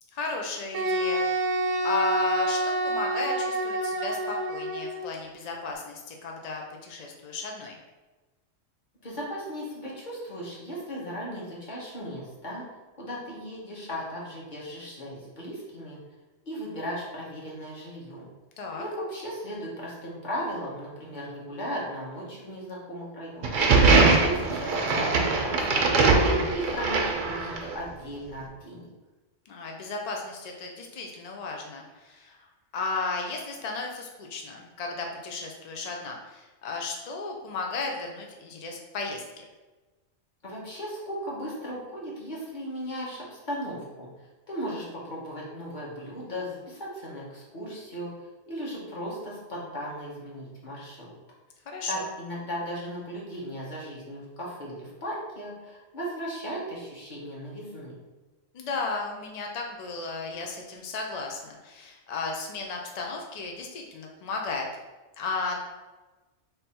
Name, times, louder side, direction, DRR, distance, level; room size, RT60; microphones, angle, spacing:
voice 1, 0.1-1.2 1.8-7.8 18.6-18.8 29.5-32.4 32.7-39.4 51.7-52.1 58.5-64.7 65.2-65.6, left 4 dB, 70° left, 1 dB, 0.3 m, -34 dB
Wind instrument woodwind instrument, 0.7-5.0, right 1 dB, 80° right, 1.0 m, -27 dB
voice 2, 9.0-12.6 13.0-16.0 16.4-18.3 18.8-23.6 24.2-26.1 26.5-28.9 40.4-48.1 48.5-51.1 51.9-58.0, equal, 40° left, -5 dB, 1.2 m, -37 dB
sound 1, 23.4-27.8, right 3 dB, 55° right, 0.6 m, -22 dB
3.6 x 2.7 x 4.2 m, 1.2 s
omnidirectional pair, 1.3 m